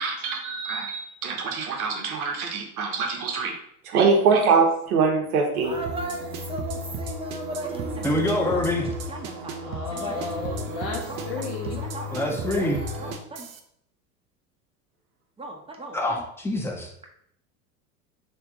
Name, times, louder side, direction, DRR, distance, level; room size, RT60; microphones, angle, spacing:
voice 1, 0.0-3.6 3.8-5.7, right 5 dB, 75° right, 2 dB, 1.1 m, -23 dB
voice 2, 5.6-9.6 9.9-10.3 11.1-11.3 11.8-12.7 13.0-13.5 15.4-16.2, right 1 dB, 10° right, 1 dB, 0.9 m, -37 dB
sound 1, 5.6-13.1, equal, 55° right, 1.3 m, -36 dB
sound 2, 5.9-13.6, right 4 dB, 35° right, 0.7 m, -35 dB
voice 3, 8.0-8.9 12.1-12.8 15.9-16.9, left 1 dB, 5° left, -1 dB, 1.0 m, -25 dB
voice 4, 9.6-11.8, left 4 dB, 45° left, -2 dB, 1.0 m, -34 dB
3.4 x 3.0 x 4.7 m, 0.71 s
hypercardioid pair, 85°, 44 cm